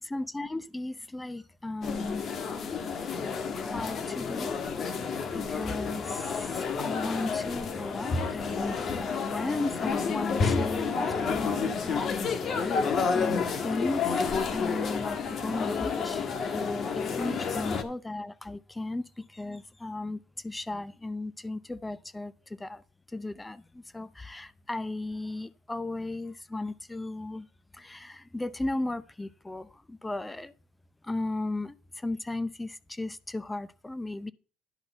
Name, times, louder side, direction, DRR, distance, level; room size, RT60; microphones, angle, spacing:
voice 1, 0.0-2.2 2.9-4.6 5.3-12.2 12.6-14.2 14.5-15.2 15.4-22.8 23.1-27.5 27.7-30.5 31.0-34.3, left 2 dB, 15° left, 0.6 m, -36 dB
sound 1, 1.8-17.8, left 5 dB, 50° left, 1.4 m, -30 dB
10.5 x 3.9 x 6.7 m
supercardioid pair, 70°, 0 cm